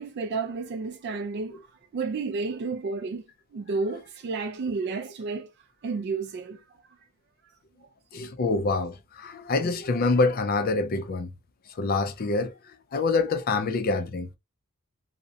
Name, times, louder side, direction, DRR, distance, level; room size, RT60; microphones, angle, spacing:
voice 1, 0.0-1.6 1.9-3.2 3.5-5.5 5.8-6.6, right 4 dB, 55° right, 0.3 m, -31 dB
voice 2, 8.1-11.3 11.8-12.5 12.9-14.4, left 3 dB, 45° left, 0.4 m, -26 dB
2.4 x 2.1 x 2.6 m
head